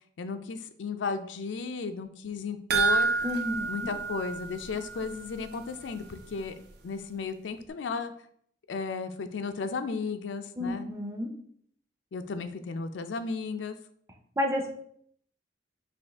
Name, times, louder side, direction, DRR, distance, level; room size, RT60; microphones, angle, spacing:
voice 1, 0.2-3.1 3.6-6.6 6.8-8.1 8.7-10.9 12.1-13.8, left 4 dB, 85° left, 9 dB, 0.4 m, -34 dB
sound 1, 2.7-5.2 5.5-5.6 6.1-6.2, right 4 dB, 60° right, 0.6 m, -29 dB
voice 2, 3.2-3.6 10.6-11.3 14.4-14.7, left 1 dB, 15° right, 2 dB, 0.5 m, -30 dB
5.2 x 2.4 x 3.4 m, 0.65 s
head